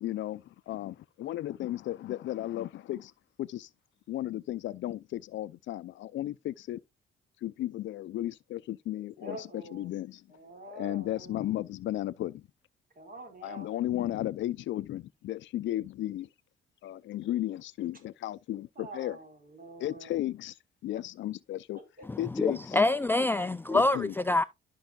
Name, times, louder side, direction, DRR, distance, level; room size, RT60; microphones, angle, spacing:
voice 1, 0.0-3.1 3.4-3.7 4.1-6.8 7.4-10.2 10.7-12.4 13.4-16.3 16.8-19.2 19.8-20.5 20.8-21.8 22.2-22.8 23.7-24.1, left 14 dB, 70° left, 0.5 m, -34 dB
voice 2, 9.2-9.9 10.3-11.5 12.9-13.7 18.7-20.2 21.7-21.8, right 2 dB, 45° right, 4.5 m, -46 dB
voice 3, 22.4-24.0 24.3-24.4, left 2 dB, 10° left, 0.3 m, -25 dB
13.0 x 5.5 x 2.4 m
cardioid pair, 90°, 20 cm